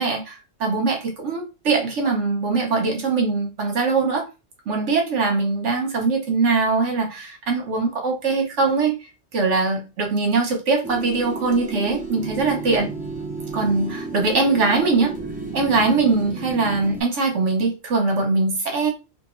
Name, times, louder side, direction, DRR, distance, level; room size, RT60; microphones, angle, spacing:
voice 1, 0.0-4.3 4.7-9.0 9.3-12.9 13.5-15.1 15.5-18.9, right 4 dB, 70° right, 1.4 m, -22 dB
sound 1, 10.8-17.0, right 3 dB, 10° right, 0.6 m, -32 dB
3.6 x 2.5 x 3.1 m
omnidirectional pair, 1.3 m